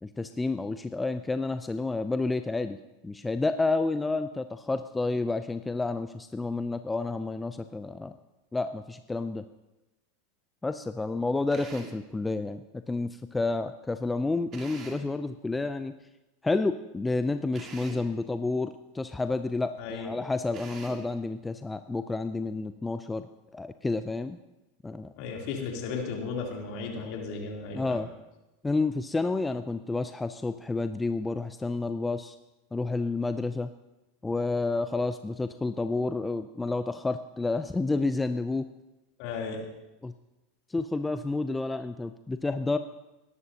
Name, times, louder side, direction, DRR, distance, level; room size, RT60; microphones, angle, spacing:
voice 1, 0.0-2.8 3.0-8.1 8.5-9.4 10.6-15.9 16.4-23.3 23.5-24.4 24.8-25.1 27.7-28.1 28.6-32.4 32.7-33.7 34.2-38.7 40.0-40.1 40.7-42.8, left 3 dB, 10° left, 10 dB, 0.5 m, -30 dB
Drill, 11.5-12.1 14.5-15.2 17.5-18.1 20.5-21.1, right 5 dB, 40° right, 2.0 m, -44 dB
voice 2, 19.8-20.1 25.2-28.0 39.2-39.6, left 5 dB, 55° left, -1 dB, 3.2 m, -35 dB
20.0 x 11.0 x 2.9 m, 0.99 s
hypercardioid pair, 95°, 0 cm